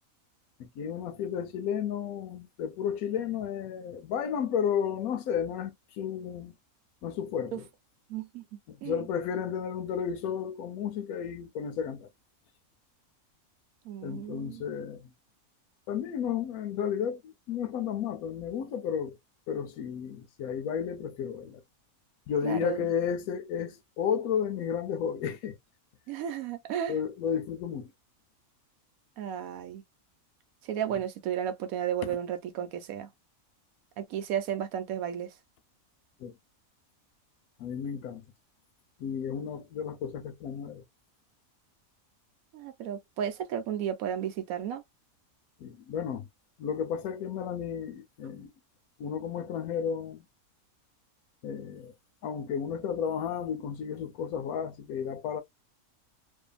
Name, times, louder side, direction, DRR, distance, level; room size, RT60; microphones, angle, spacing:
voice 1, 0.6-6.6 7.0-7.7 8.7-12.1 14.0-15.1 15.9-19.2 19.5-21.6 22.3-25.6 26.9-27.9 36.2-36.3 37.6-38.2 39.0-40.8 45.6-46.3 46.6-48.5 49.0-50.3 51.4-51.9 52.2-55.4, left 8 dB, 85° left, 1.1 m, -33 dB
voice 2, 8.1-8.4 8.8-9.0 13.8-14.6 22.4-22.9 26.1-27.0 29.2-29.8 30.7-33.1 34.0-35.3 42.5-44.8, right 9 dB, 90° right, 1.1 m, -33 dB
2.7 x 2.5 x 2.2 m
omnidirectional pair, 1.5 m